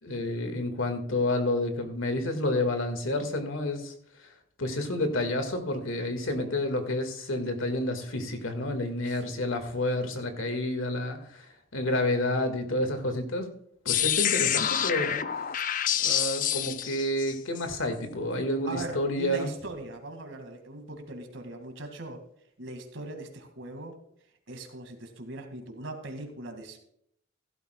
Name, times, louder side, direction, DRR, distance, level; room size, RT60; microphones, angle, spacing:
voice 1, 0.0-3.9 4.2-4.3 4.6-11.5 11.7-13.5 13.9-15.2 16.0-19.5, left 1 dB, 85° left, 6 dB, 1.8 m, -29 dB
sound 1, 13.9-17.6, left 10 dB, 40° left, 0.5 m, -27 dB
voice 2, 18.7-22.2 22.6-24.0 24.5-26.8, right 2 dB, 70° right, 5 dB, 2.0 m, -40 dB
15.5 x 12.0 x 2.3 m, 0.70 s
head